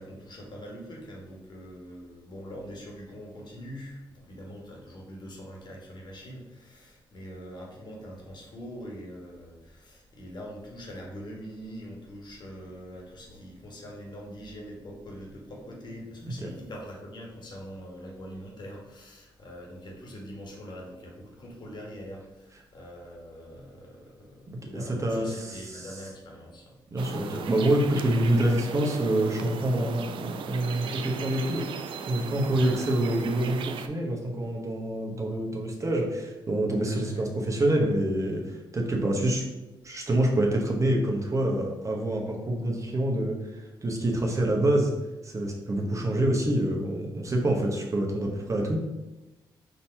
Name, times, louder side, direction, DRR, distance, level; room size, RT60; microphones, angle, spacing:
voice 1, 0.0-26.8 32.5-32.8 37.0-37.3, equal, 55° left, -1 dB, 1.3 m, -43 dB
voice 2, 24.6-25.9 26.9-39.4 39.8-44.9 45.2-48.8, right 1 dB, 35° right, 0 dB, 0.9 m, -26 dB
sound 1, 27.0-33.9, right 6 dB, 75° right, 0.4 m, -37 dB
3.9 x 2.8 x 4.4 m, 1.0 s
cardioid pair, 80°, 9 cm